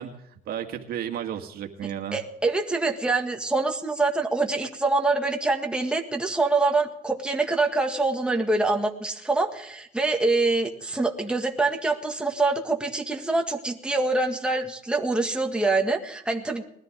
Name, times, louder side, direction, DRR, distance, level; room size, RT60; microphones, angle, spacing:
voice 1, 0.0-2.2, right 9 dB, 65° right, 4 dB, 1.9 m, -33 dB
voice 2, 2.1-16.6, right 3 dB, 5° right, 2 dB, 1.9 m, -25 dB
20.0 x 13.5 x 3.7 m, 0.74 s
cardioid pair, 110°, 17 cm